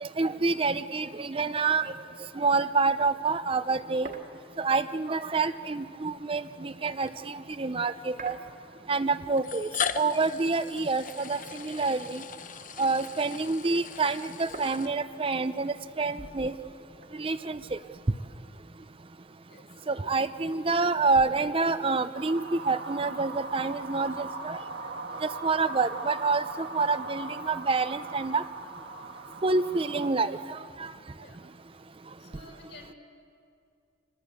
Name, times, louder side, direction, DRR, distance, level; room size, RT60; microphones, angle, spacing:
voice 1, 0.0-1.8 2.4-4.1 4.6-8.4 8.9-9.7 10.0-12.2 12.8-16.5 17.2-17.8 19.9-24.6 25.2-28.4 29.4-30.9, right 3 dB, 30° right, 12 dB, 0.6 m, -27 dB
sound 1, 3.2-7.6 8.2-9.3 9.6-11.0 11.3-13.0 13.3-18.5, right 2 dB, 45° right, 1.9 m, -50 dB
sound 2, 5.9-6.0 7.1-7.2 8.3-8.4 9.4-15.4, left 7 dB, 45° left, 0.8 m, -38 dB
voice 2, 19.5-19.8 31.1-31.4 32.2-33.0, left 2 dB, 70° left, 2 dB, 4.6 m, -52 dB
sound 3, 22.2-30.1, right 3 dB, 65° right, 1.5 m, -40 dB
26.0 x 20.5 x 8.4 m, 2.5 s
head